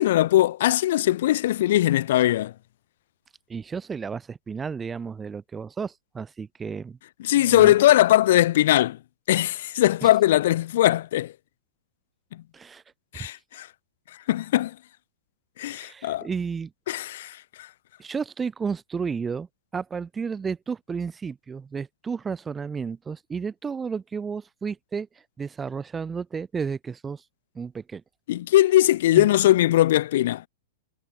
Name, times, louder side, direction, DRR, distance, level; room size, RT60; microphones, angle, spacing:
voice 1, 0.0-2.5 7.2-9.0 9.3-11.3 13.1-13.7 14.3-14.7 15.6-16.3 16.9-17.4 28.3-30.5, left 14 dB, 55° left, 4.6 m, -20 dB
voice 2, 3.5-7.0 7.3-7.7 10.0-10.1 12.5-12.8 13.1-13.3 15.6-16.7 18.0-19.5 19.7-25.1 25.4-27.2 27.5-28.0 29.2-29.3, right 5 dB, 10° right, 3.1 m, -32 dB
supercardioid pair, 175°, 0 cm